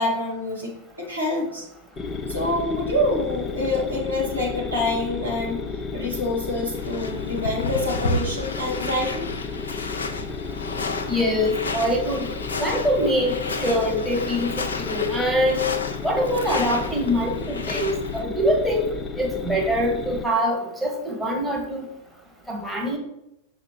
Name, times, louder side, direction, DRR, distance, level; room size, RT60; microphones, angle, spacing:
voice 1, 0.0-1.7 2.3-5.7 5.9-9.3, left 2 dB, 85° right, -4 dB, 2.0 m, -26 dB
sound 1, 2.0-20.2, left 4 dB, 20° left, 0.6 m, -33 dB
sound 2, 6.7-18.2, left 3 dB, 70° left, 0.6 m, -32 dB
voice 2, 11.1-12.3 12.6-15.7 16.0-18.8 19.2-21.8 22.5-23.0, equal, 5° right, -1 dB, 1.5 m, -24 dB
6.0 x 5.0 x 4.4 m, 0.83 s
figure-of-eight pair, 90°, 0 cm